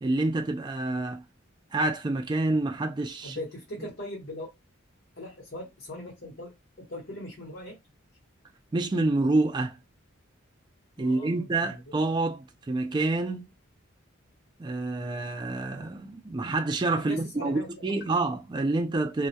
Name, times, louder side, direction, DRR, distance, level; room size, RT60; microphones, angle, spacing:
voice 1, 0.0-1.2 1.7-3.4 8.7-9.8 11.0-13.5 14.6-19.3, right 2 dB, 20° right, 0.3 m, -27 dB
voice 2, 3.2-4.5 5.2-7.8 11.0-12.0 17.0-17.7, left 1 dB, 55° left, 0.9 m, -40 dB
2.2 x 2.1 x 2.7 m
head